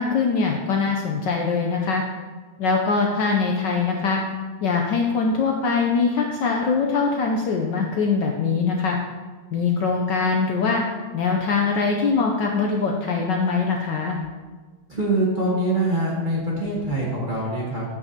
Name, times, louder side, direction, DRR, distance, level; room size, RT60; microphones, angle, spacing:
voice 1, 0.0-2.0 2.6-4.2 4.6-9.0 9.5-10.8 11.1-14.2, left 4 dB, 70° left, 1 dB, 1.1 m, -22 dB
voice 2, 14.9-17.8, right 1 dB, 30° right, -6 dB, 0.9 m, -24 dB
8.7 x 7.0 x 2.8 m, 1.4 s
omnidirectional pair, 2.4 m